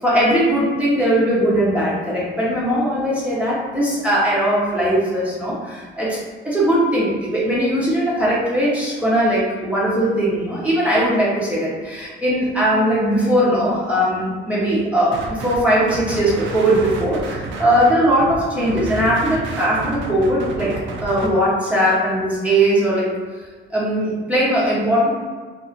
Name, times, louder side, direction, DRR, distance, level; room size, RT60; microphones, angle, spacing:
voice 1, 0.0-6.2 6.4-23.1 23.7-25.1, right 1 dB, 5° right, -8 dB, 0.8 m, -19 dB
sound 1, 15.1-15.6 15.9-21.3, right 3 dB, 75° right, 0.4 m, -30 dB
2.7 x 2.5 x 2.5 m, 1.5 s
cardioid pair, 90°, 20 cm